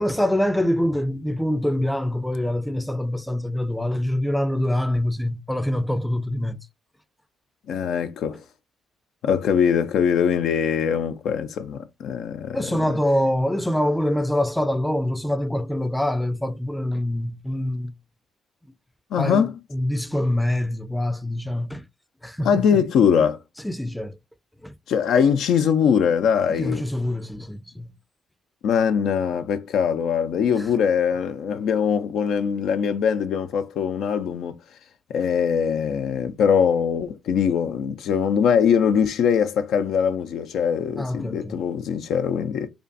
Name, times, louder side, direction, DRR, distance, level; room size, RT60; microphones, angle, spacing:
voice 1, 0.0-6.6 12.5-17.9 19.2-21.8 22.2-22.8 23.6-24.1 24.6-24.7 26.5-27.9 41.0-41.6, left 1 dB, 5° left, 0.4 m, -25 dB
voice 2, 7.7-8.4 9.2-12.6 19.1-19.6 22.4-23.4 24.9-26.8 28.6-34.5 35.1-42.7, left 7 dB, 70° left, 0.4 m, -22 dB
5.0 x 2.2 x 2.6 m
hypercardioid pair, 50°, 0 cm